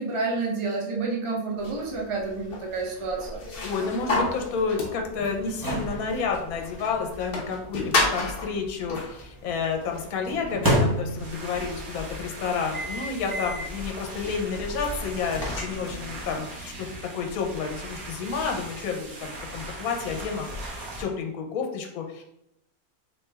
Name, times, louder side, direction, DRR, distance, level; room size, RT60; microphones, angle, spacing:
voice 1, 0.0-3.4, right 3 dB, 50° right, -2 dB, 0.3 m, -29 dB
sound 1, 1.6-16.4, left 2 dB, 45° left, 0.9 m, -34 dB
sound 2, 3.2-9.2 10.3-11.6 12.7-13.8 14.2-14.4 15.3-17.0, equal, 15° right, 0.9 m, -31 dB
voice 2, 3.6-16.9 17.1-22.2, left 5 dB, 75° left, 3 dB, 1.1 m, -30 dB
sound 3, 11.2-21.0, right 1 dB, 75° right, 1.4 m, -39 dB
4.0 x 3.2 x 3.4 m, 0.80 s
omnidirectional pair, 1.5 m